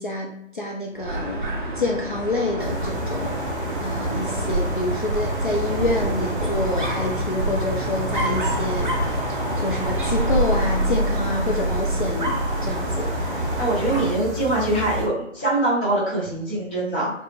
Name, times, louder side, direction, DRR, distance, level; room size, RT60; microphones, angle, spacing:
voice 1, 0.0-1.4 1.8-3.3 3.8-8.9 9.3-13.1, left 2 dB, 40° left, -2 dB, 0.5 m, -27 dB
Dog, 1.0-14.3, right 1 dB, 40° right, 0.7 m, -27 dB
sound 1, 2.6-15.1, equal, 55° right, 1.0 m, -31 dB
voice 2, 13.6-17.1, right 2 dB, 10° left, -12 dB, 0.7 m, -23 dB
4.6 x 2.4 x 3.2 m, 0.83 s
figure-of-eight pair, 150°, 40 cm